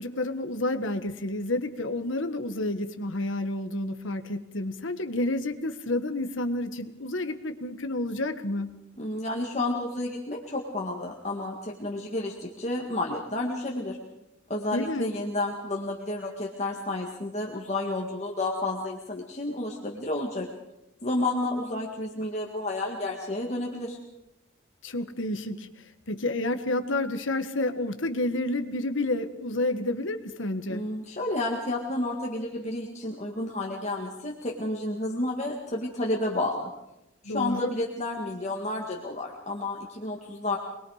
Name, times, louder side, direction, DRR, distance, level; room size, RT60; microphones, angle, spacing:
voice 1, 0.0-8.7 14.7-15.1 24.8-25.7 26.1-30.8 37.2-37.7, left 2 dB, 70° left, 8 dB, 1.5 m, -30 dB
voice 2, 9.0-14.0 14.5-20.5 21.0-24.0 30.7-36.7 37.2-40.6, left 2 dB, 35° left, -1 dB, 2.0 m, -31 dB
24.5 x 21.0 x 5.0 m, 0.90 s
head